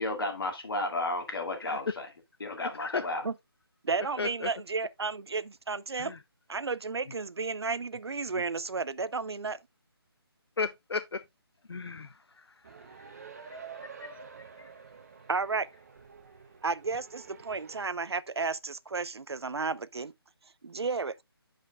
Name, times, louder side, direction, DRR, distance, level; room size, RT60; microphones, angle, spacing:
voice 1, 0.0-2.1 2.4-3.2, left 2 dB, 60° left, 2.3 m, -33 dB
voice 2, 2.6-3.1 4.2-4.5 6.0-6.2 10.6-11.2 11.7-12.1 13.4-14.1 14.6-14.7, left 4 dB, 80° left, 0.6 m, -35 dB
voice 3, 3.8-6.2 6.5-9.6 15.3-15.7 16.6-20.1 20.6-21.2, right 4 dB, 90° right, 0.5 m, -32 dB
sound 1, 12.6-17.8, right 6 dB, 40° right, 0.9 m, -48 dB
11.0 x 5.1 x 2.4 m
figure-of-eight pair, 160°, 13 cm